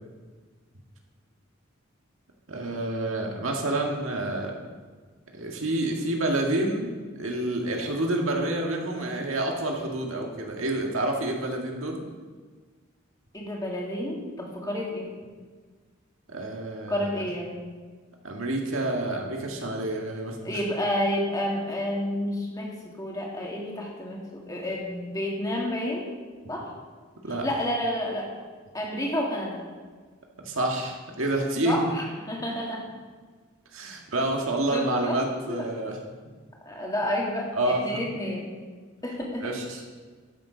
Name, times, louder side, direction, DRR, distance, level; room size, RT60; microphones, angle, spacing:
voice 1, 2.5-4.6 5.3-12.1 16.3-17.1 18.2-20.6 27.2-27.5 30.4-31.8 33.7-36.0 37.5-37.8 39.4-39.8, right 1 dB, 90° right, 1 dB, 1.8 m, -28 dB
voice 2, 13.3-15.1 16.9-17.6 20.4-26.1 26.5-26.7 27.3-28.3 28.7-29.6 31.6-32.9 34.7-35.2 35.5-35.7 36.7-38.5 39.0-39.6, left 1 dB, 20° left, -2 dB, 1.9 m, -30 dB
12.5 x 6.6 x 5.0 m, 1.5 s
head